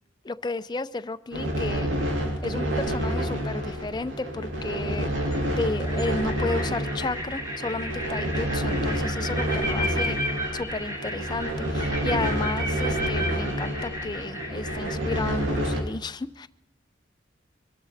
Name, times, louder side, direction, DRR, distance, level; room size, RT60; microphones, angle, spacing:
voice 1, 0.2-5.1 5.4-10.2 10.5-16.5, left 3 dB, 20° left, 11 dB, 0.5 m, -33 dB
sound 1, 1.3-15.8, right 1 dB, 85° right, 3.2 m, -28 dB
sound 2, 2.7-3.2 4.7-4.8 5.2-15.6, equal, 15° right, 2.7 m, -34 dB
23.5 x 13.0 x 4.2 m, 0.84 s
head